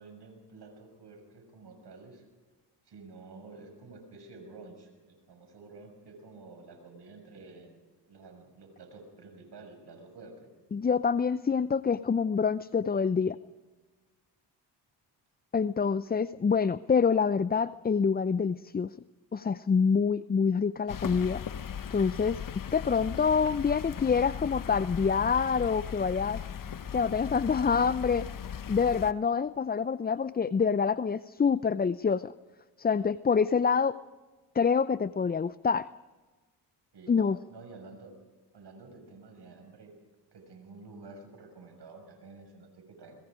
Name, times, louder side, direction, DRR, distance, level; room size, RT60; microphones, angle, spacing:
voice 1, 0.0-2.2 2.8-7.7 8.1-10.5 36.9-38.1 38.5-39.9 40.3-43.2, right 3 dB, 60° right, 5 dB, 6.5 m, -50 dB
voice 2, 10.7-13.4 15.5-18.9 19.3-21.4 21.9-26.4 26.9-28.3 28.7-32.3 32.8-34.0 34.5-35.9 37.1-37.4, left 6 dB, 20° left, 16 dB, 0.5 m, -26 dB
sound 1, 20.9-29.1, left 8 dB, 45° left, 1.1 m, -38 dB
25.5 x 21.0 x 5.1 m, 1.3 s
supercardioid pair, 55°, 46 cm